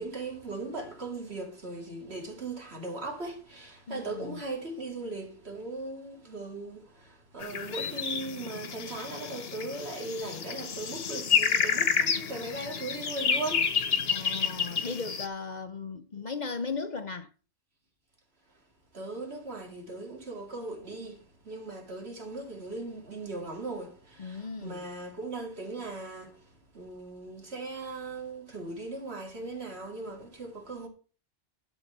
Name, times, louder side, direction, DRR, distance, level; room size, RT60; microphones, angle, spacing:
voice 1, 0.0-14.3 18.9-30.9, right 2 dB, 65° right, 2.8 m, -39 dB
voice 2, 3.9-4.4 14.1-17.3 24.2-24.9, left 4 dB, 45° left, 0.8 m, -37 dB
sound 1, 7.4-15.3, left 6 dB, 65° left, 1.3 m, -30 dB
12.0 x 4.0 x 8.0 m
omnidirectional pair, 1.1 m